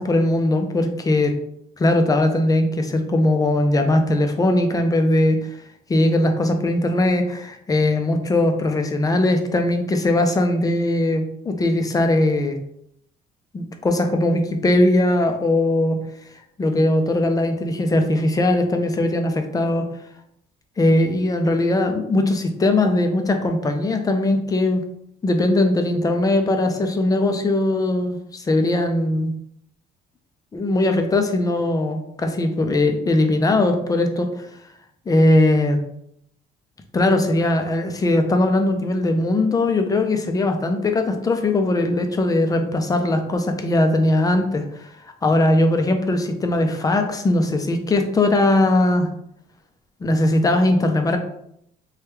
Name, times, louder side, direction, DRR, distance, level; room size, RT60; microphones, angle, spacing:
voice 1, 0.0-1.3 1.8-5.5 5.9-12.6 13.5-16.0 16.6-19.9 20.8-24.8 25.2-29.3 30.5-34.3 35.1-35.8 36.9-44.9 45.2-49.1 50.0-51.2, left 1 dB, 20° left, 5 dB, 0.4 m, -20 dB
3.0 x 2.2 x 3.3 m, 0.72 s
cardioid pair, 110°, 17 cm